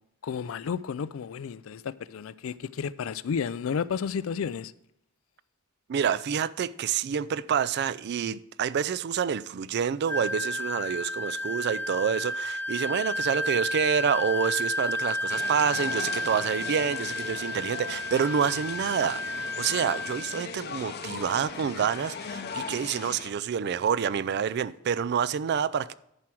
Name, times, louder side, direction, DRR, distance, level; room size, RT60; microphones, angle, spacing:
voice 1, 0.2-4.7, left 6 dB, 75° left, 0.4 m, -32 dB
voice 2, 5.9-25.9, right 7 dB, 55° right, 0.3 m, -28 dB
Wind instrument woodwind instrument, 10.1-20.5, left 1 dB, 10° left, 0.5 m, -32 dB
sound 1, 15.3-23.3, left 5 dB, 50° left, 0.7 m, -38 dB
11.0 x 4.5 x 6.2 m
head